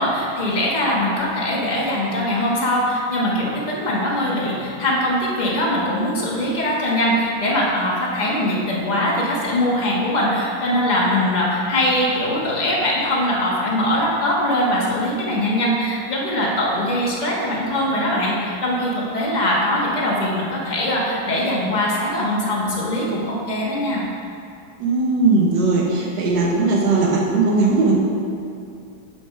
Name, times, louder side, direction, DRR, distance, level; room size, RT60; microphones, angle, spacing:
voice 1, 0.0-24.0, left 1 dB, 25° left, -5 dB, 1.0 m, -21 dB
voice 2, 24.8-27.9, right 3 dB, 60° right, -2 dB, 1.7 m, -18 dB
6.4 x 5.1 x 5.8 m, 2.5 s
omnidirectional pair, 2.3 m